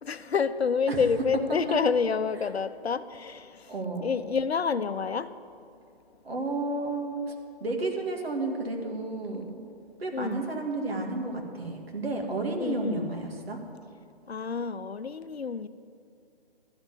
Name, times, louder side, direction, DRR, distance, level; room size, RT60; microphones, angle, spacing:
voice 1, 0.0-3.7 4.0-5.3 10.1-10.4 12.6-13.1 14.3-15.7, left 6 dB, 85° left, 13 dB, 0.7 m, -28 dB
voice 2, 3.7-4.2 6.2-7.3 7.6-9.6 10.0-13.6, right 2 dB, 70° right, 1 dB, 2.4 m, -32 dB
12.0 x 6.0 x 9.2 m, 2.3 s
figure-of-eight pair, 150°, 31 cm